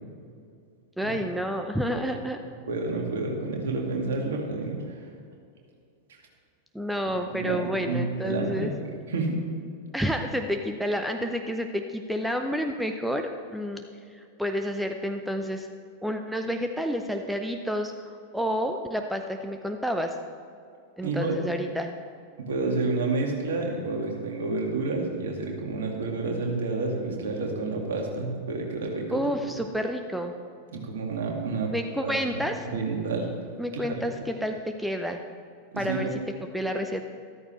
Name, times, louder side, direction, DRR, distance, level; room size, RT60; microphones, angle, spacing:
voice 1, 1.0-2.4 6.7-8.7 9.9-13.8 14.1-15.7 16.0-17.9 18.3-20.1 21.0-21.9 29.1-30.3 31.7-32.7 33.6-35.2 35.7-36.1 36.5-37.0, equal, ahead, 5 dB, 0.7 m, -29 dB
voice 2, 2.7-5.0 7.3-8.7 9.1-9.4 21.0-21.4 22.4-29.5 30.7-31.7 32.0-33.3 33.7-34.0 35.7-36.1, right 3 dB, 60° right, 0 dB, 2.2 m, -30 dB
13.5 x 13.0 x 3.2 m, 2.4 s
figure-of-eight pair, 90°, 0 cm